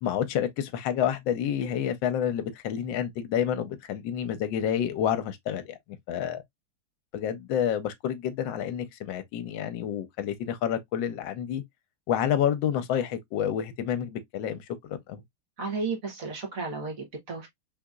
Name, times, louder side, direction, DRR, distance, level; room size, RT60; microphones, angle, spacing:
voice 1, 0.0-5.8 6.1-6.4 7.1-11.6 12.1-15.2, left 9 dB, 75° left, 1.3 m, -29 dB
voice 2, 15.6-17.5, right 4 dB, 50° right, 1.3 m, -33 dB
3.9 x 2.8 x 2.3 m
omnidirectional pair, 2.2 m